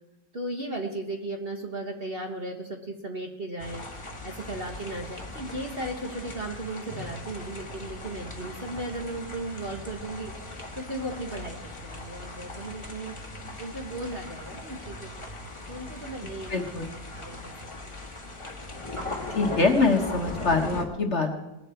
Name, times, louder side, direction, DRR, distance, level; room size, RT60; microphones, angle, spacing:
voice 1, 0.3-3.8 4.2-10.3 10.8-13.1 13.6-15.3 15.7-16.5 17.1-17.5 17.8-17.9, right 1 dB, 35° right, 2 dB, 1.4 m, -36 dB
sound 1, 3.6-20.9, left 2 dB, 20° left, 1.5 m, -39 dB
voice 2, 16.5-16.9 19.3-21.4, left 3 dB, 45° left, 3 dB, 1.5 m, -24 dB
20.0 x 11.0 x 4.5 m, 0.96 s
omnidirectional pair, 1.9 m